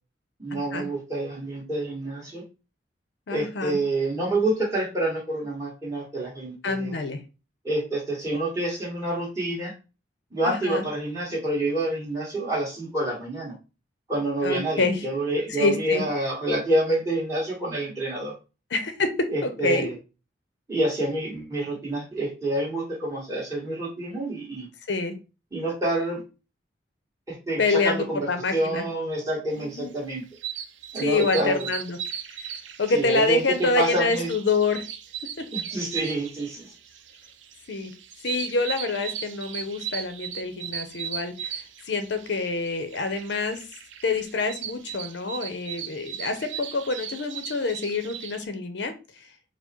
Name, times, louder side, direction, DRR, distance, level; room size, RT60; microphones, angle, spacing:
voice 1, 0.4-2.4 3.3-6.9 7.6-9.7 10.3-13.5 14.1-18.3 19.3-19.9 20.7-24.7 25.5-26.2 27.3-30.2 30.9-31.7 32.9-34.3 35.5-36.7, right 1 dB, 15° right, -4 dB, 1.7 m, -28 dB
voice 2, 3.3-3.8 6.6-7.2 10.4-10.8 14.4-15.1 15.5-16.0 18.7-19.9 24.9-25.1 27.6-28.8 29.6-29.9 31.0-32.0 32.3-32.4 32.8-34.8 37.7-37.9 38.2-43.6 44.0-49.2, left 3 dB, 70° left, 8 dB, 0.6 m, -26 dB
sound 1, 29.8-48.5, right 9 dB, 80° right, 0.5 m, -37 dB
4.5 x 2.1 x 4.4 m, 0.31 s
head